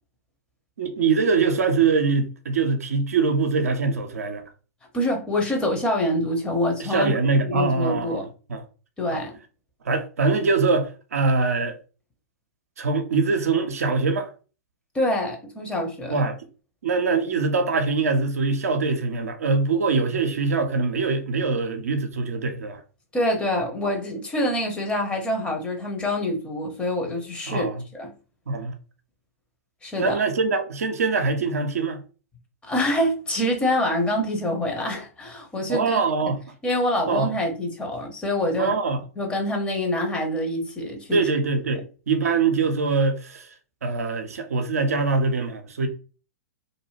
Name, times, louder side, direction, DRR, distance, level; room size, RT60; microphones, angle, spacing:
voice 1, 0.8-4.4 6.8-8.2 8.5-8.6 9.1-9.2 9.8-11.8 12.8-14.3 16.1-16.5 16.8-22.8 27.5-27.8 28.5-28.8 30.0-32.0 35.7-36.4 37.1-37.3 38.6-39.0 41.1-43.5 43.8-45.9, right 4 dB, 70° right, 0.5 m, -23 dB
voice 2, 4.9-7.1 7.5-8.3 9.0-9.3 14.9-16.2 23.1-28.1 29.8-30.2 32.6-36.0 36.6-38.7 39.2-41.2, left 1 dB, 15° left, 0.8 m, -26 dB
2.6 x 2.2 x 3.1 m
figure-of-eight pair, 110°, 8 cm